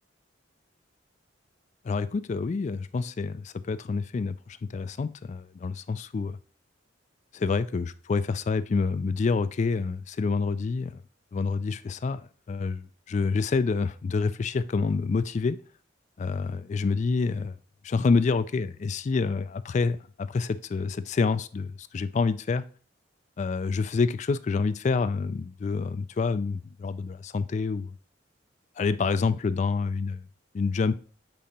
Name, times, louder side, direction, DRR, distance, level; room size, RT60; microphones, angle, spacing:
voice 1, 1.8-6.4 7.3-10.9 11.3-12.2 12.5-15.6 16.2-17.5 17.8-22.6 23.4-27.9 28.8-30.2 30.5-31.0, left 4 dB, 40° left, 0.3 m, -27 dB
8.5 x 2.9 x 4.2 m
head